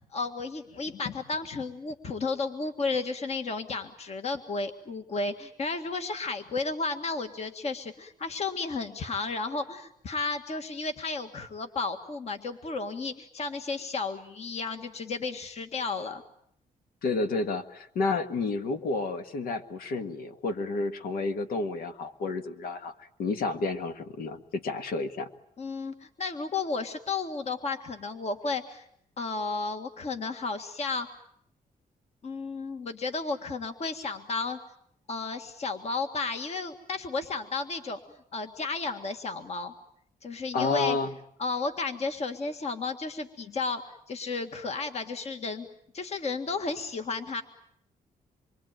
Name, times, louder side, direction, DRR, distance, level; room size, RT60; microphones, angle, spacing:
voice 1, 0.1-16.2 25.6-28.9 29.2-31.1 32.2-34.6 35.1-38.0 38.3-39.7 40.2-41.0 41.4-45.7 45.9-47.4, left 4 dB, 45° left, 7 dB, 1.8 m, -33 dB
voice 2, 17.0-25.3 40.5-41.1, left 3 dB, 90° left, 8 dB, 1.8 m, -30 dB
27.0 x 23.5 x 9.1 m, 0.69 s
cardioid pair, 115°, 15 cm